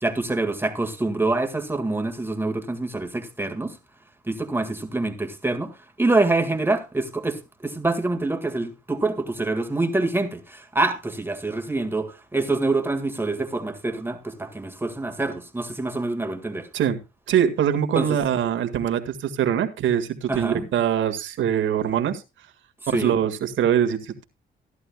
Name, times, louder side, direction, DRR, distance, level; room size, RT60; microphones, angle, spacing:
voice 1, 0.0-3.8 4.2-16.7 17.9-18.1 20.3-20.7 22.8-23.2, right 2 dB, 10° right, 1.9 m, -26 dB
voice 2, 17.3-22.2 22.9-24.2, right 9 dB, 75° right, 1.9 m, -23 dB
16.0 x 11.5 x 2.3 m
cardioid pair, 90°, 20 cm